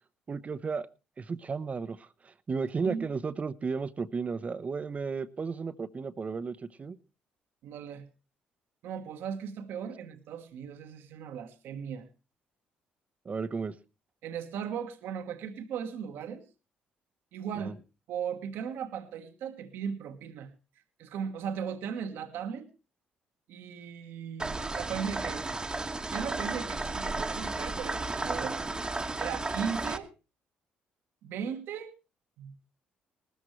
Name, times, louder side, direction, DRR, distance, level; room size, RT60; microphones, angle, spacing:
voice 1, 0.3-0.9 1.2-7.0 13.2-13.8 17.5-17.7, right 5 dB, 40° right, 0.9 m, -34 dB
voice 2, 7.6-8.1 8.8-12.1 14.2-16.4 17.3-17.8 18.1-20.5 21.0-22.7 23.5-25.4 26.1-28.7 29.2-30.1 31.2-31.9 32.4-32.6, right 7 dB, 75° right, 1.3 m, -37 dB
sound 1, 24.4-30.0, right 2 dB, 20° right, 1.2 m, -33 dB
19.0 x 13.5 x 3.2 m
supercardioid pair, 60°, 4 cm